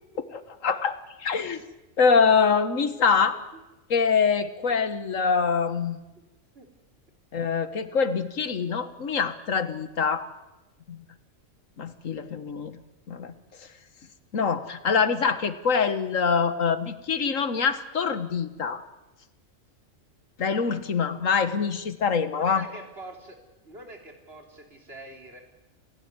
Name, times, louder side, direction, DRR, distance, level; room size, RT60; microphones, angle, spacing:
voice 1, 0.6-1.6 2.0-3.4 3.9-6.0 7.3-10.3 10.9-11.0 11.8-12.8 13.1-13.3 13.6-13.7 14.3-18.8 20.4-22.6, left 5 dB, 80° left, 12 dB, 1.8 m, -24 dB
voice 2, 22.3-23.4 23.6-25.4, right 1 dB, 50° right, 3 dB, 3.7 m, -44 dB
28.5 x 16.5 x 9.7 m, 1.0 s
omnidirectional pair, 1.3 m